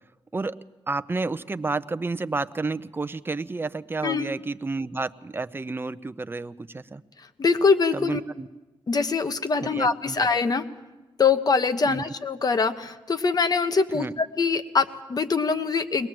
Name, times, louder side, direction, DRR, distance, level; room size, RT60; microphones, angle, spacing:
voice 1, 0.9-7.0 7.9-8.5 9.6-10.3 11.9-12.0 13.9-14.1, right 3 dB, 25° right, 13 dB, 0.7 m, -30 dB
voice 2, 7.4-8.2 8.9-10.6 11.2-16.1, left 4 dB, 45° left, 10 dB, 1.2 m, -23 dB
22.5 x 19.5 x 7.7 m, 1.1 s
cardioid pair, 95°, 9 cm